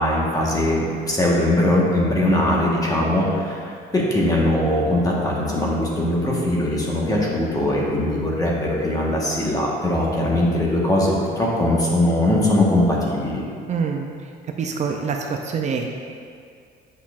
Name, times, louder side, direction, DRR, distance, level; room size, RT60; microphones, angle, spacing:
voice 1, 0.0-13.4, left 1 dB, 20° left, -4 dB, 1.3 m, -21 dB
voice 2, 13.7-14.1 14.6-15.9, right 5 dB, 45° right, 2 dB, 0.5 m, -25 dB
8.3 x 5.5 x 2.5 m, 2.2 s
cardioid pair, 110°, 17 cm